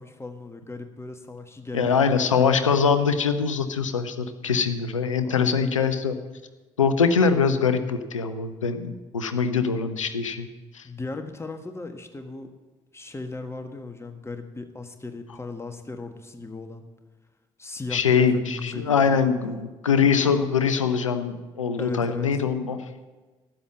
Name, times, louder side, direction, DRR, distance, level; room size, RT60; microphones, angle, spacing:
voice 1, 0.0-2.7 5.2-5.7 10.8-12.5 12.9-16.8 17.6-19.6 21.8-22.6, left 3 dB, 15° left, 7 dB, 1.5 m, -37 dB
voice 2, 1.7-6.1 6.8-10.5 10.7-10.8 17.9-22.8, left 6 dB, 85° left, 10 dB, 0.6 m, -23 dB
13.0 x 8.8 x 7.4 m, 1.2 s
figure-of-eight pair, 40°, 16 cm